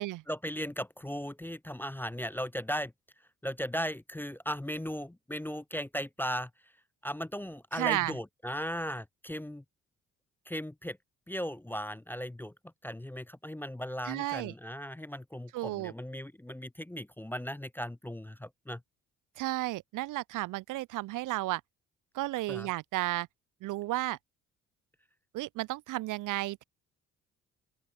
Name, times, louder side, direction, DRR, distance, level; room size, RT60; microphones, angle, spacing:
voice 1, 0.3-2.9 3.4-6.5 7.0-9.6 10.5-11.0 11.3-12.5 12.8-18.8 22.5-22.7, equal, 5° left, 0.7 m, -37 dB
voice 2, 7.7-8.1 14.1-14.5 15.5-15.9 19.4-21.6 22.1-23.3 23.6-24.2 25.3-26.6, right 18 dB, 55° right, 0.7 m, -33 dB
open air
figure-of-eight pair, 45°, 38 cm